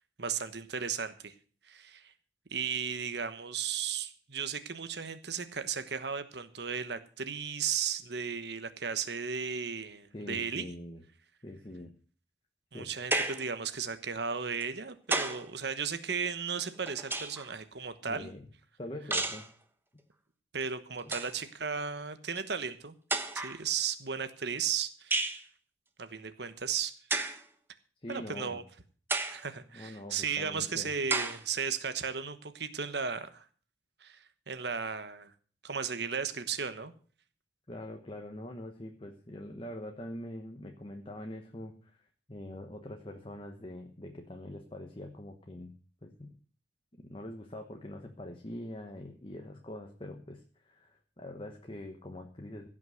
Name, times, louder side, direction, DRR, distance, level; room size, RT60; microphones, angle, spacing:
voice 1, 0.2-1.3 1.7-2.1 2.5-10.7 12.7-18.3 20.5-22.9 23.3-25.3 26.0-26.9 28.1-28.6 29.3-33.4 34.0-35.3 35.6-36.9, right 6 dB, 60° right, 10 dB, 1.2 m, -35 dB
voice 2, 10.1-11.0 11.4-11.9 12.7-13.0 18.1-18.5 18.8-19.4 28.0-28.6 29.7-30.9 37.7-45.8 46.0-46.3 47.1-52.7, left 1 dB, 30° left, 3 dB, 1.2 m, -44 dB
sound 1, 13.1-13.5 14.6-15.5 16.6-17.5 19.1-19.5 20.6-20.7 21.0-21.4 22.4-22.5 23.1-23.6 25.1-25.4 27.1-27.4 28.1-28.2 29.1-29.4 30.1-30.2 31.1-31.4, right 2 dB, 10° right, 1.1 m, -32 dB
16.0 x 6.1 x 7.8 m, 0.43 s
head